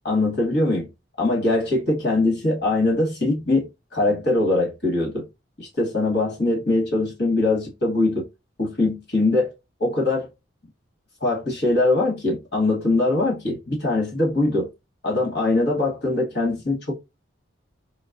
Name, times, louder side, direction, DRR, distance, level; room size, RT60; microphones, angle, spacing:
voice 1, 0.0-0.9 1.2-5.3 5.6-8.3 8.6-9.5 9.8-10.3 11.2-14.7 15.0-16.9, left 2 dB, 55° left, 1.5 m, -22 dB
3.9 x 2.1 x 2.3 m
head